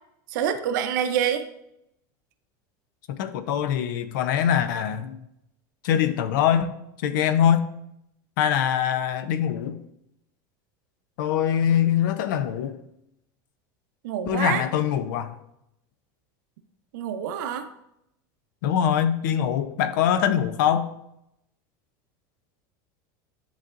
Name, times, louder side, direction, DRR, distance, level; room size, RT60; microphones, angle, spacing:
voice 1, 0.3-1.4 14.0-14.6 16.9-17.7, right 9 dB, 75° right, 0.7 m, -26 dB
voice 2, 3.1-5.2 5.8-7.6 8.4-9.8 11.2-12.8 14.3-15.3 18.6-20.9, left 9 dB, 80° left, 0.6 m, -23 dB
10.0 x 4.0 x 2.5 m
supercardioid pair, 155°, 10 cm